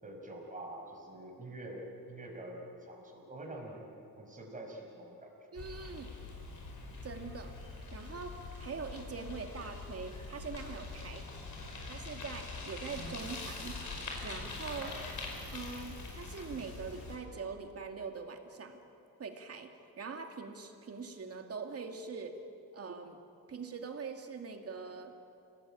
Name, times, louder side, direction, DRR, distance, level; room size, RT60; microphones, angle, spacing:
voice 1, 0.0-3.9 4.2-5.3 14.8-15.1, right 1 dB, 20° right, 0 dB, 5.4 m, -46 dB
voice 2, 5.5-6.2 7.0-7.5 7.9-11.3 11.8-13.8 14.2-14.9 15.5-18.8 19.2-22.4 22.7-23.2 23.5-25.1, right 5 dB, 40° right, 4 dB, 2.3 m, -43 dB
Bicycle, 5.6-17.2, left 3 dB, 50° left, 5.3 m, -44 dB
29.5 x 18.0 x 8.9 m, 2.7 s
wide cardioid pair, 155°, 37 cm